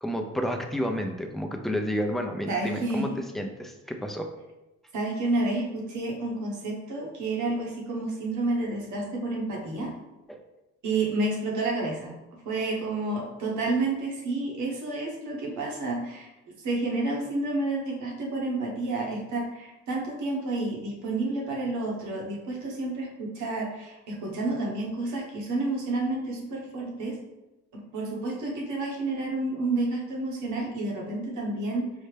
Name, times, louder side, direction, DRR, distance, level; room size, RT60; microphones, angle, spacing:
voice 1, 0.0-4.3 10.3-10.4, equal, ahead, 3 dB, 0.4 m, -30 dB
voice 2, 2.5-3.2 4.9-9.9 10.8-12.1 12.4-16.3 16.6-27.2 27.7-31.9, right 2 dB, 75° right, -2 dB, 1.2 m, -30 dB
5.4 x 2.1 x 3.3 m, 1.0 s
cardioid pair, 90°, 30 cm